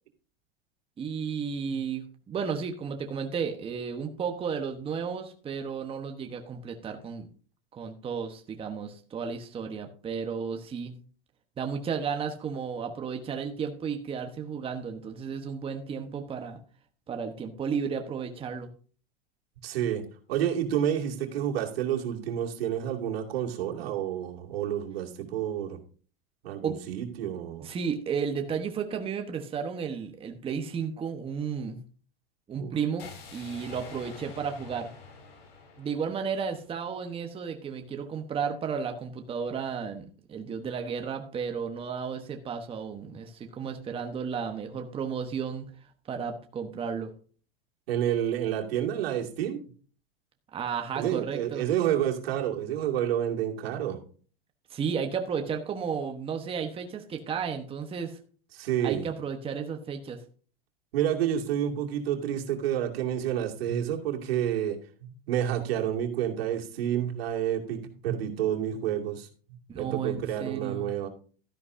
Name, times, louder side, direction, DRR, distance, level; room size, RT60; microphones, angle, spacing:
voice 1, 1.0-7.3 7.7-10.9 11.6-16.6 17.1-18.7 26.6-26.8 27.6-31.8 32.5-34.9 35.8-45.7 46.1-47.1 50.5-51.7 54.7-58.2 58.8-60.2 69.7-70.9, right 6 dB, 20° right, 5 dB, 1.1 m, -33 dB
voice 2, 19.6-25.8 26.4-27.7 32.6-32.8 47.9-49.6 50.9-54.0 58.5-59.1 60.9-71.1, right 10 dB, 75° right, 1 dB, 2.6 m, -29 dB
sound 1, 33.0-37.0, left 5 dB, 75° left, 5.1 m, -47 dB
13.0 x 10.5 x 2.7 m, 0.40 s
supercardioid pair, 135°, 30 cm